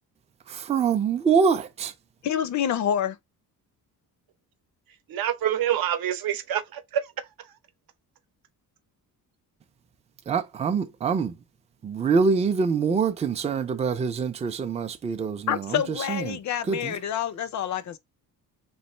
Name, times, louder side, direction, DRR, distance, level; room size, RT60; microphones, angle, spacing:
voice 1, 0.5-1.9 10.3-11.3 11.8-16.4 16.6-17.0, right 5 dB, 20° right, 0.4 m, -25 dB
voice 2, 2.2-3.2 15.5-18.0, left 9 dB, 50° left, 0.4 m, -27 dB
voice 3, 5.1-7.1 7.4-7.5, right 10 dB, 70° right, 0.8 m, -27 dB
3.1 x 2.5 x 4.2 m
cardioid pair, 145°, 37 cm